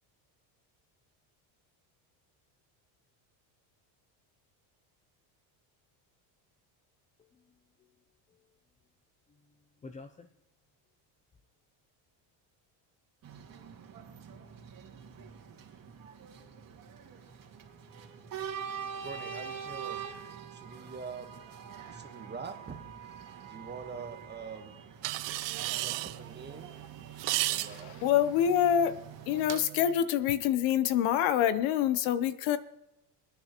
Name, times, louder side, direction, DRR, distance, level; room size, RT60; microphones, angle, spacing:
voice 1, 7.2-7.9 8.3-8.6 9.3-10.3, left 3 dB, 15° left, 0.5 m, -52 dB
sound 1, 13.2-29.5, right 7 dB, 40° right, 2.2 m, -45 dB
voice 2, 18.9-20.0 20.5-21.4 21.8-23.2 23.5-24.8 25.6-26.7 27.5-28.1 29.3-29.4, right 5 dB, 20° right, 1.3 m, -45 dB
sound 2, 25.0-30.0, right 17 dB, 60° right, 0.7 m, -36 dB
voice 3, 27.5-29.0 29.3-32.6, left 10 dB, 75° left, 1.0 m, -26 dB
23.5 x 9.3 x 3.0 m
cardioid pair, 120°, 50 cm